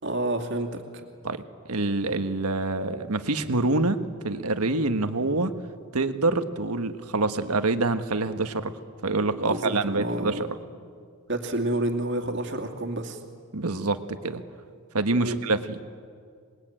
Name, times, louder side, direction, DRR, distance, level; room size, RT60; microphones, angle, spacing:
voice 1, 0.0-0.8 9.4-10.5 11.3-13.2 15.2-15.4, right 1 dB, 55° right, 3 dB, 2.5 m, -29 dB
voice 2, 1.7-5.5 5.9-8.7 9.0-10.5 13.5-14.4 14.9-15.6, right 2 dB, 90° right, 9 dB, 1.5 m, -26 dB
26.5 x 21.5 x 9.0 m, 2.1 s
head